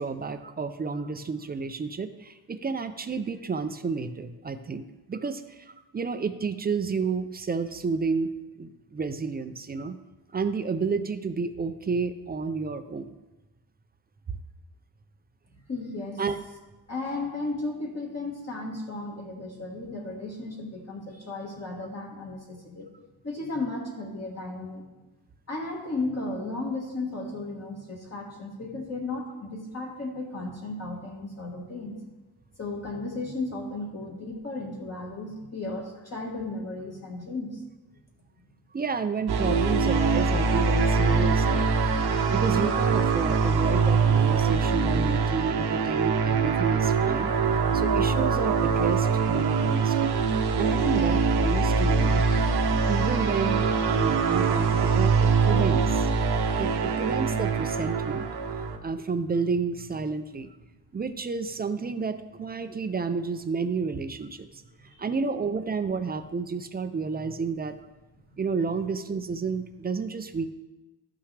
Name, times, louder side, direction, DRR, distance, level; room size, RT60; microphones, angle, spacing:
voice 1, 0.0-10.0 10.3-13.1 16.2-16.4 38.7-41.7 42.3-47.3 47.7-52.2 52.9-56.1 56.6-58.3 58.8-60.5 60.9-64.6 65.0-67.8 68.4-70.5, right 5 dB, 25° right, 10 dB, 0.5 m, -31 dB
voice 2, 15.7-16.2 16.9-22.9 23.2-24.9 25.5-32.0 32.6-37.6 64.9-65.1, left 2 dB, 35° left, -3 dB, 1.6 m, -34 dB
sound 1, 39.3-58.8, right 5 dB, 65° right, 1.0 m, -23 dB
13.0 x 5.8 x 3.3 m, 1.1 s
cardioid pair, 105°, 41 cm